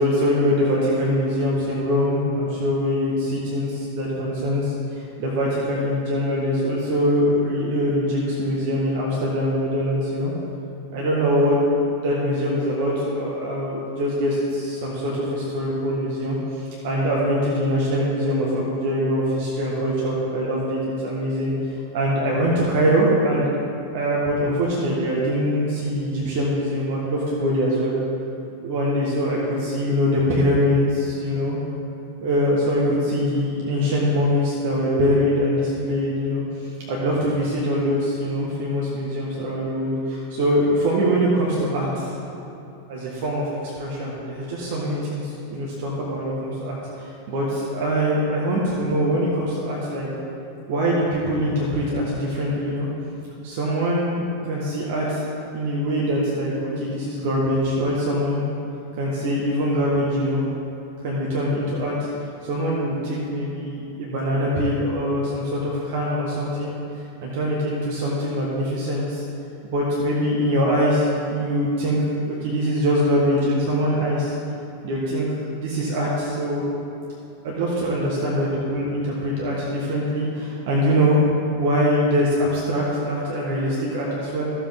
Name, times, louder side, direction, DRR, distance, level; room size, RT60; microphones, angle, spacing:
voice 1, 0.0-10.3 10.9-11.6 12.0-21.5 21.9-23.5 23.9-27.9 28.6-31.6 32.2-42.1 42.9-50.1 50.7-52.9 53.4-55.2 55.5-58.4 59.0-60.4 61.0-61.9 62.4-69.2 69.6-72.0 72.2-74.3 74.8-75.2 75.5-76.7 77.4-81.2 81.5-84.4, equal, 50° right, -4 dB, 1.5 m, -23 dB
13.5 x 7.4 x 3.6 m, 2.9 s
figure-of-eight pair, 90°, 0 cm